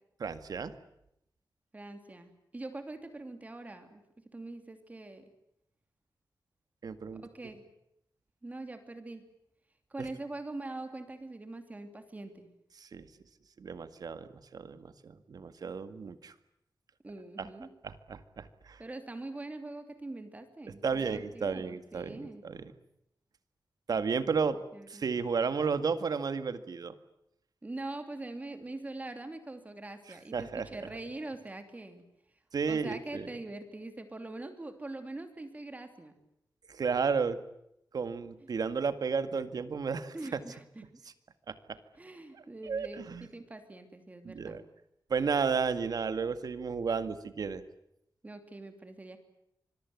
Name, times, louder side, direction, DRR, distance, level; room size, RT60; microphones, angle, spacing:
voice 1, 0.2-0.7 6.8-7.2 12.8-13.1 13.6-16.3 17.4-17.5 17.8-18.8 20.8-22.7 23.9-24.6 24.9-26.9 30.3-30.7 32.5-33.3 36.7-37.4 37.9-40.4 41.5-41.8 42.6-43.3 44.2-44.6 45.1-47.6, right 5 dB, 65° right, 11 dB, 1.9 m, -33 dB
voice 2, 1.7-5.2 7.2-7.6 8.4-9.3 9.9-12.5 17.0-17.7 18.8-22.4 24.5-25.0 27.6-32.0 32.7-36.1 40.1-40.8 42.0-44.6 48.2-49.2, right 2 dB, 20° right, 7 dB, 2.9 m, -43 dB
26.0 x 21.5 x 9.4 m, 0.78 s
wide cardioid pair, 170°, 7 cm